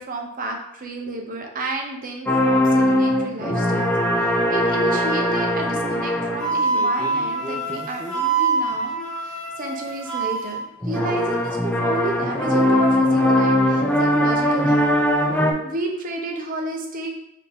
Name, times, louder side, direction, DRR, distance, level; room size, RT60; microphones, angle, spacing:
voice 1, 0.0-3.9 4.2-9.0 9.2-15.0 15.6-17.1, right 2 dB, 35° right, 2 dB, 0.6 m, -31 dB
sound 1, 2.3-8.1 10.8-15.5, left 1 dB, 5° left, 0.3 m, -20 dB
Wind instrument woodwind instrument, 6.4-10.6, right 4 dB, 65° left, 1.2 m, -25 dB
4.1 x 2.7 x 3.4 m, 0.79 s
head